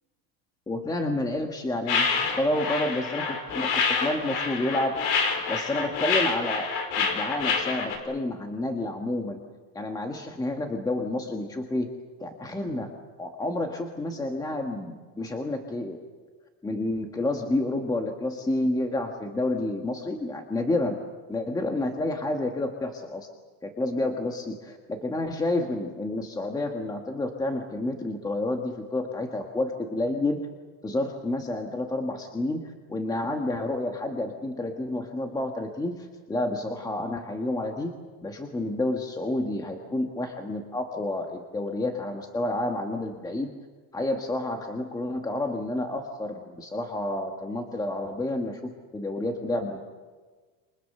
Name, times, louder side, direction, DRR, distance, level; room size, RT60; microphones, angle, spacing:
voice 1, 0.7-5.0 5.5-9.4 9.7-11.9 12.2-12.9 13.2-16.0 16.6-21.0 21.3-23.3 23.6-30.5 30.8-37.9 38.2-43.5 43.9-49.8, left 2 dB, 10° left, 3 dB, 1.6 m, -29 dB
sound 1, 1.9-8.0, left 5 dB, 75° left, 5.3 m, -27 dB
29.5 x 27.0 x 6.8 m, 1.4 s
cardioid pair, 170°, 40 cm